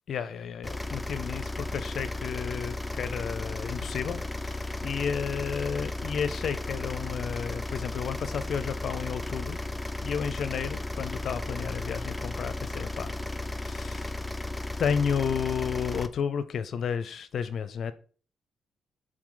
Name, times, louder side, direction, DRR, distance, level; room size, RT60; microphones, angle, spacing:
voice 1, 0.1-1.4 1.7-9.6 10.0-13.2 13.5-14.2 14.8-17.9, left 7 dB, 65° left, 13 dB, 0.5 m, -32 dB
sound 1, 0.6-16.1, left 2 dB, 10° left, 0.5 m, -35 dB
7.7 x 3.9 x 3.8 m, 0.41 s
cardioid pair, 95°, 0 cm